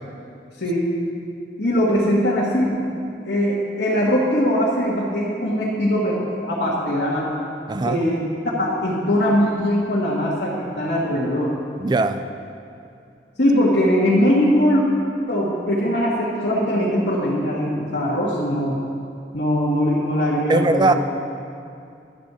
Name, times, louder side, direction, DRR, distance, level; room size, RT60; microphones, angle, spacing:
voice 1, 0.6-0.9 1.6-2.8 3.3-7.3 7.8-8.2 8.6-11.5 13.4-14.8 15.3-18.7 19.3-21.0, equal, 65° left, -7 dB, 1.5 m, -21 dB
voice 2, 7.7-8.0 11.8-12.2 20.5-20.9, right 3 dB, 25° right, 10 dB, 0.4 m, -19 dB
11.5 x 4.3 x 8.1 m, 2.5 s
head